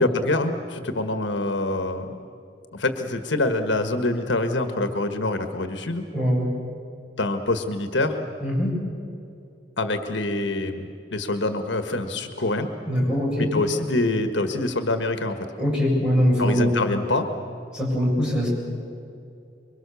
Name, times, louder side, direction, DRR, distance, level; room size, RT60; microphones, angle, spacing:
voice 1, 0.0-2.2 2.7-6.0 7.2-8.2 9.8-12.7 13.4-15.5 16.4-17.3, left 2 dB, 75° left, 7 dB, 1.5 m, -25 dB
voice 2, 6.1-6.5 8.4-8.7 12.9-13.5 15.6-16.8 17.7-18.5, equal, 5° right, -4 dB, 7.5 m, -22 dB
26.0 x 23.0 x 7.0 m, 2.6 s
head